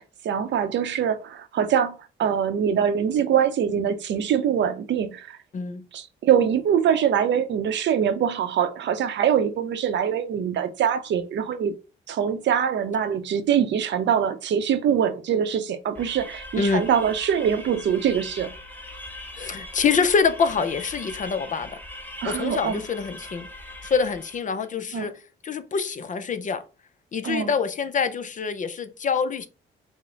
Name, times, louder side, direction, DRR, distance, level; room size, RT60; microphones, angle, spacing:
voice 1, 0.0-5.4 5.9-11.7 12.1-18.5 22.2-22.8 24.9-25.1 27.2-27.5, right 8 dB, 65° right, 0.7 m, -23 dB
voice 2, 5.5-5.8 16.6-16.8 19.4-21.8 22.2-23.5 23.8-25.1 25.4-26.6 27.1-29.5, left 5 dB, 40° left, 0.6 m, -25 dB
sound 1, 15.9-24.5, left 1 dB, 10° left, 1.0 m, -41 dB
4.9 x 2.1 x 3.8 m
cardioid pair, 90°, 20 cm